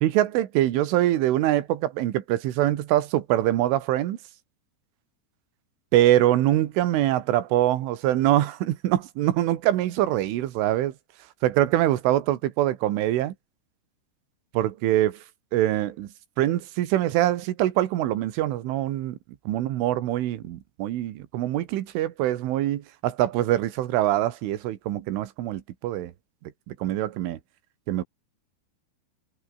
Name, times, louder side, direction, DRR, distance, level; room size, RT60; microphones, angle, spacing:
voice 1, 0.0-4.2 5.9-10.9 11.4-13.3 14.5-15.2 15.5-16.1 16.4-19.2 19.5-26.1 26.7-27.4 27.9-28.0, right 14 dB, 90° right, 4.2 m, -24 dB
omnidirectional pair, 5.4 m